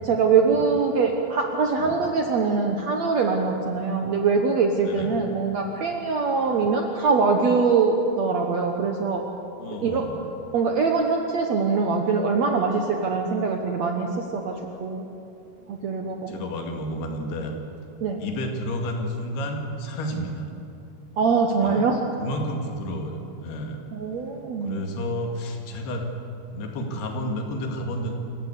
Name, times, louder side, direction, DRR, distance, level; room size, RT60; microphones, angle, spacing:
voice 1, 0.0-9.2 9.7-10.1 10.5-15.0 15.7-16.4 18.0-18.2 21.2-22.0 23.9-24.8, right 4 dB, 65° right, 3 dB, 1.8 m, -23 dB
voice 2, 4.9-5.2 9.6-10.2 15.6-15.7 16.3-17.5 18.2-20.5 21.6-21.9 22.2-23.8 24.6-26.1 26.5-28.1, equal, 80° left, 2 dB, 4.1 m, -31 dB
26.5 x 15.0 x 8.3 m, 2.8 s
omnidirectional pair, 4.6 m